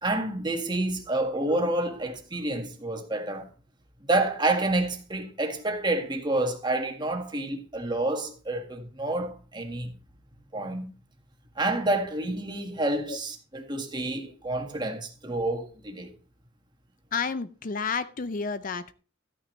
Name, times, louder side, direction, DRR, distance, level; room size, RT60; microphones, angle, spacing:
voice 1, 0.0-3.5 4.1-9.9 10.5-10.8 11.6-16.1, right 2 dB, 25° right, 1.7 m, -28 dB
voice 2, 17.1-18.9, left 5 dB, 45° left, 0.5 m, -30 dB
13.5 x 9.2 x 3.2 m
head